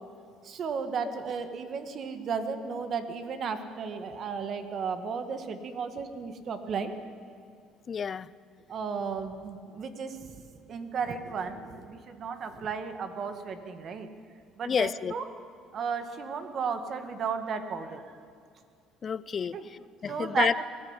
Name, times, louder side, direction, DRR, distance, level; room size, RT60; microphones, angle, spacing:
voice 1, 0.4-6.9 8.7-10.4 10.7-14.1 14.6-15.3 15.7-18.0 19.5-19.7 20.1-20.6, right 5 dB, 45° right, 8 dB, 1.9 m, -34 dB
voice 2, 7.9-8.3 14.6-15.1 19.0-20.5, left 6 dB, 35° left, 19 dB, 0.6 m, -30 dB
21.0 x 14.5 x 9.9 m, 2.3 s
cardioid pair, 110°, 0 cm